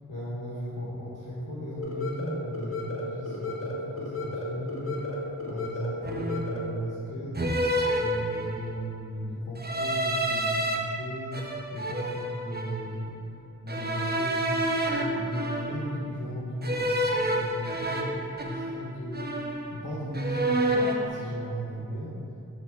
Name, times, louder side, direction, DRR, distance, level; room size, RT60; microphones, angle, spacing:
voice 1, 0.1-5.0 5.5-7.4 8.0-13.1 13.6-20.7 21.1-22.2, equal, 85° left, -7 dB, 1.1 m, -36 dB
sound 1, 1.8-6.8, left 2 dB, 45° left, 1.2 m, -34 dB
sound 2, 4.9-5.2 6.0-6.6 7.3-8.8 9.6-10.8 11.3-12.9 13.7-16.0 16.6-18.9 19.1-19.9 20.1-21.1, right 1 dB, 30° right, 0.8 m, -29 dB
6.9 x 3.7 x 6.1 m, 2.7 s
wide cardioid pair, 50°, 32 cm